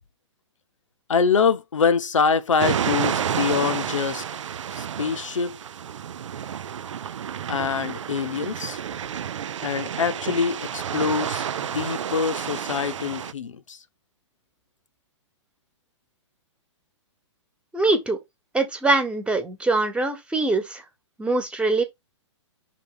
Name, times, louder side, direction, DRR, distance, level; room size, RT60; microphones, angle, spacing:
voice 1, 1.1-4.2 4.7-5.6 7.5-8.8 9.6-13.8, left 6 dB, 75° left, 0.9 m, -24 dB
sound 1, 2.6-13.3, right 9 dB, 70° right, 0.5 m, -30 dB
voice 2, 17.7-18.2 18.5-20.8 21.2-21.8, right 2 dB, 5° right, 1.3 m, -23 dB
5.3 x 3.8 x 5.0 m
hypercardioid pair, 120°, 16 cm